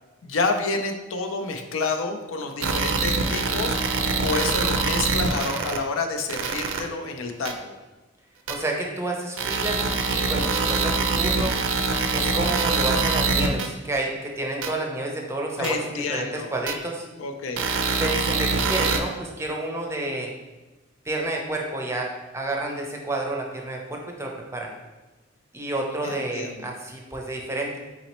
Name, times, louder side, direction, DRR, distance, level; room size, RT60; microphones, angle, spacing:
voice 1, 0.2-7.7 15.6-16.5 17.2-17.7 26.0-26.7, left 3 dB, 80° left, 5 dB, 0.5 m, -29 dB
sound 1, 2.6-5.8 6.3-6.8 7.5-7.6 8.5-8.6 9.4-13.7 14.6-14.7 15.6-15.7 16.7-16.8 17.6-19.0, right 4 dB, 75° right, 0.5 m, -24 dB
voice 2, 8.5-9.8 10.1-11.6 12.1-17.1 18.0-20.3 21.1-24.7 25.5-27.8, right 2 dB, 15° right, 0 dB, 0.5 m, -30 dB
4.0 x 4.0 x 3.0 m, 1.1 s
head